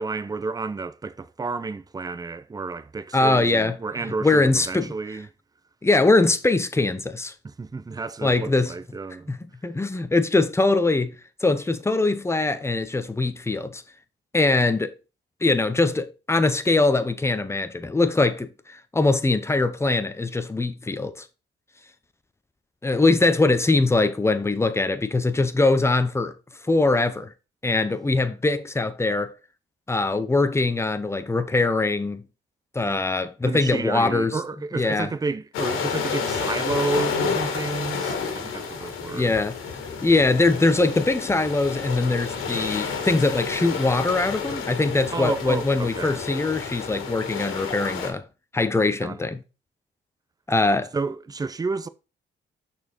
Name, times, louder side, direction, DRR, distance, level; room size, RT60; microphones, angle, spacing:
voice 1, 0.0-5.3 7.4-9.3 33.4-39.4 45.1-46.2 49.0-49.2 50.9-51.9, right 4 dB, 20° right, 0.5 m, -31 dB
voice 2, 3.1-3.8 4.2-4.9 5.8-7.3 8.2-8.7 9.3-11.1 11.4-13.8 14.3-14.9 15.4-21.3 22.8-26.3 26.7-27.3 27.6-29.3 29.9-32.2 32.7-34.4 34.7-35.1 39.1-39.6 40.0-48.2 48.5-49.4 50.5-50.9, left 3 dB, 15° left, 0.8 m, -22 dB
sound 1, 35.5-48.1, left 5 dB, 90° left, 1.7 m, -30 dB
6.1 x 4.4 x 4.6 m
cardioid pair, 90°, 20 cm